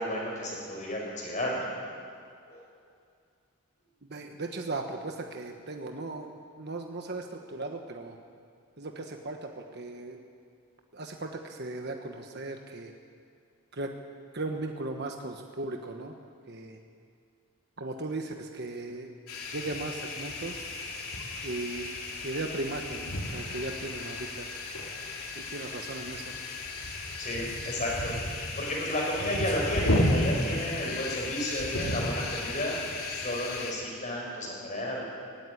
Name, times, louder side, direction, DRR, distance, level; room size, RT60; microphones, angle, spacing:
voice 1, 0.0-1.7 2.5-2.7 26.1-26.2 27.2-35.0, equal, 35° left, -1 dB, 6.0 m, -33 dB
voice 2, 4.0-8.2 8.8-10.2 10.9-12.9 13.7-13.9 14.3-16.1 16.5-16.8 17.8-19.1 19.5-20.8 21.4-21.9 22.2-24.5 25.3-26.3, right 2 dB, 50° right, 3 dB, 1.3 m, -37 dB
sound 1, 19.3-33.7, left 1 dB, 85° left, 3.1 m, -33 dB
18.0 x 16.5 x 9.9 m, 2.3 s
head